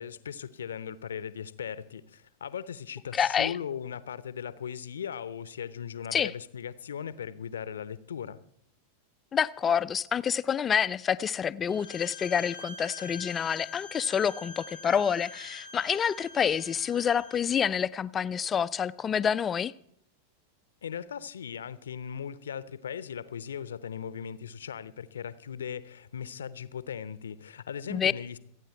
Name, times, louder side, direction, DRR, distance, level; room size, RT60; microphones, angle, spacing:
voice 1, 0.0-8.4 20.8-28.4, left 8 dB, 65° left, 0.7 m, -38 dB
voice 2, 3.1-3.5 6.1-6.3 9.3-19.7 27.9-28.1, left 7 dB, 20° left, 0.5 m, -27 dB
Bowed string instrument, 11.7-17.4, left 5 dB, 90° right, 6.6 m, -45 dB
26.5 x 9.4 x 4.5 m
figure-of-eight pair, 90°, 0 cm